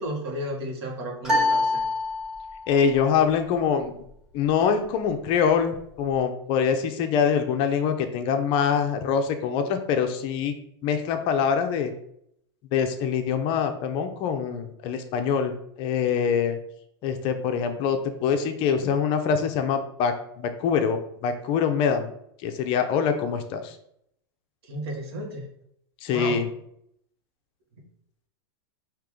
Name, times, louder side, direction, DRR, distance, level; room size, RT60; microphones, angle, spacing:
voice 1, 0.0-1.8 24.7-25.4 26.1-26.4, right 1 dB, 70° right, 0 dB, 1.5 m, -33 dB
sound 1, 1.2-2.7, left 2 dB, 5° right, 1.4 m, -25 dB
voice 2, 2.7-3.9 4.3-10.5 10.8-11.9 12.7-16.6 17.0-22.1 22.4-23.8 26.0-26.5, left 7 dB, 40° left, 7 dB, 0.5 m, -24 dB
4.7 x 2.9 x 3.7 m, 0.72 s
hypercardioid pair, 135°, 14 cm